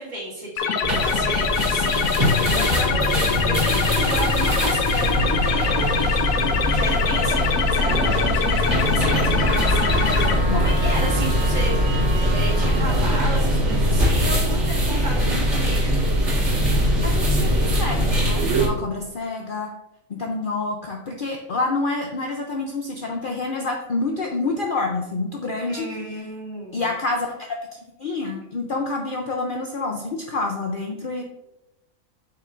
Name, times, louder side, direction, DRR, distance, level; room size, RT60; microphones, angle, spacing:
voice 1, 0.0-11.8 12.1-16.0 25.7-26.9, right 1 dB, 35° right, -6 dB, 2.1 m, -33 dB
sound 1, 0.6-10.3, left 6 dB, 85° left, 1.1 m, -24 dB
sound 2, 0.8-18.7, equal, 60° right, 2.1 m, -22 dB
Trumpet, 9.3-13.1, right 2 dB, 15° left, 1.4 m, -33 dB
voice 2, 17.0-19.7 20.1-25.9 26.7-31.2, left 3 dB, 50° left, 2 dB, 0.7 m, -28 dB
7.8 x 5.8 x 2.5 m, 0.93 s
omnidirectional pair, 1.4 m